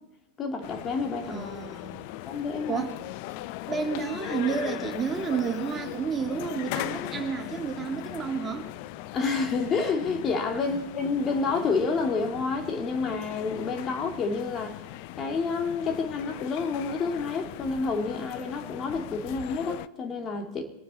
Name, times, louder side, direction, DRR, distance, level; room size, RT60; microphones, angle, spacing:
voice 1, 0.4-1.4 2.2-2.9 9.1-14.8 15.2-20.6, left 4 dB, 30° left, 4 dB, 2.6 m, -29 dB
sound 1, 0.6-19.9, left 17 dB, 50° left, 0.5 m, -39 dB
voice 2, 1.3-2.0 2.7-3.0 3.7-8.7 10.7-10.8, right 6 dB, 20° right, 3 dB, 2.3 m, -31 dB
23.0 x 9.4 x 4.2 m, 0.94 s
figure-of-eight pair, 95°, 0 cm